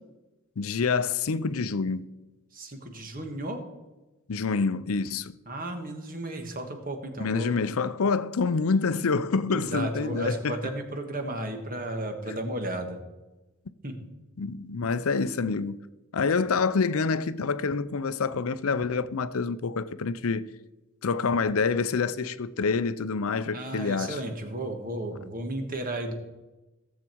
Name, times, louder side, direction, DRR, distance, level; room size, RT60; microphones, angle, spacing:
voice 1, 0.6-2.0 4.3-5.3 7.2-10.6 12.3-12.4 14.4-15.8 16.1-20.5 21.0-24.2, left 4 dB, 75° left, 0.5 m, -27 dB
voice 2, 2.5-3.6 5.5-7.5 9.5-13.0 13.8-14.1 16.4-16.5 23.5-26.1, right 1 dB, 40° right, 1.6 m, -34 dB
16.5 x 7.5 x 4.6 m
head